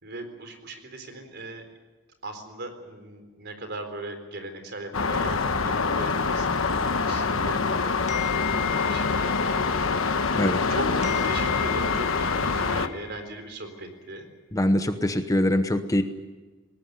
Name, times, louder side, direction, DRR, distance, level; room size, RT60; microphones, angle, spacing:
voice 1, 0.0-1.6 2.2-8.3 8.7-14.3, right 2 dB, 55° right, 6 dB, 4.1 m, -39 dB
sound 1, 4.9-12.9, left 4 dB, 75° left, 1.2 m, -25 dB
sound 2, 8.1-10.7 11.0-13.6, left 17 dB, 35° left, 1.2 m, -37 dB
voice 2, 14.5-16.0, left 1 dB, 15° left, 9 dB, 0.9 m, -23 dB
20.5 x 18.5 x 9.5 m, 1.2 s
head